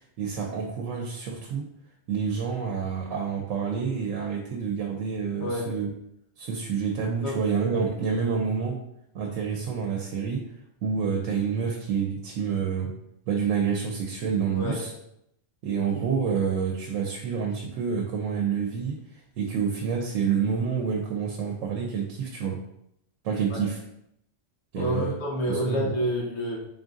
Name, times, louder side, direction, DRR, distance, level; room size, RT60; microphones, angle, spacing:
voice 1, 0.2-1.7 2.1-5.9 6.4-8.8 9.1-10.4 10.8-12.9 13.3-14.9 15.6-19.0 19.4-22.6 23.2-23.8 24.7-25.1 25.5-25.9, right 6 dB, 90° right, 2 dB, 1.0 m, -28 dB
voice 2, 5.4-5.7 7.2-7.4 7.7-7.8 14.5-14.8 23.5-23.6 24.7-26.7, equal, 65° left, -4 dB, 1.2 m, -28 dB
3.9 x 3.7 x 2.5 m, 0.78 s
omnidirectional pair, 1.3 m